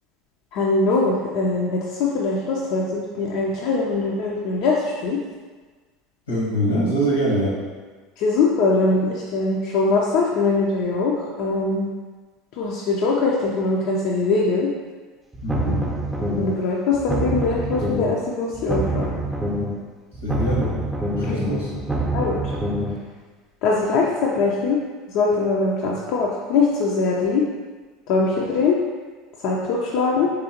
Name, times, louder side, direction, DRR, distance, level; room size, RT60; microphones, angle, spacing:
voice 1, 0.5-5.2 8.2-11.9 12.6-14.7 16.3-19.1 21.3-21.4 22.1-22.4 23.6-24.8 25.1-27.4 28.1-28.8 29.4-30.3, left 3 dB, 60° left, -3 dB, 0.5 m, -22 dB
voice 2, 6.3-7.6 15.4-15.9 20.2-20.7 21.2-21.7, equal, 85° left, -5 dB, 1.1 m, -23 dB
sound 1, 15.3-16.6 16.9-18.2 18.5-19.8 20.1-23.0, right 1 dB, 10° right, 0.7 m, -26 dB
3.9 x 3.4 x 2.8 m, 1.4 s
hypercardioid pair, 75°, 0 cm